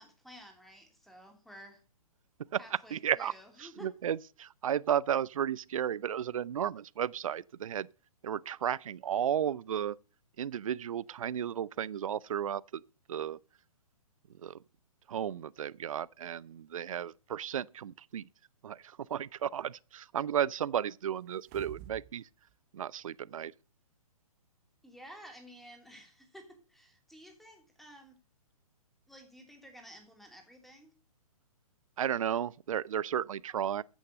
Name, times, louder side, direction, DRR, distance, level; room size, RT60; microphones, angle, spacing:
voice 1, 0.0-1.8 2.5-3.9 24.8-28.2 29.1-30.9, equal, ahead, 3.0 m, -53 dB
voice 2, 2.5-3.3 3.6-7.9 8.2-10.0 10.4-12.8 13.1-13.4 14.4-14.6 15.1-18.3 18.6-22.3 22.7-23.5 32.0-33.8, right 9 dB, 65° right, 0.5 m, -33 dB
sound 1, 21.3-22.1 22.5-22.6, right 12 dB, 25° right, 0.7 m, -48 dB
14.5 x 6.5 x 6.6 m
figure-of-eight pair, 125°, 19 cm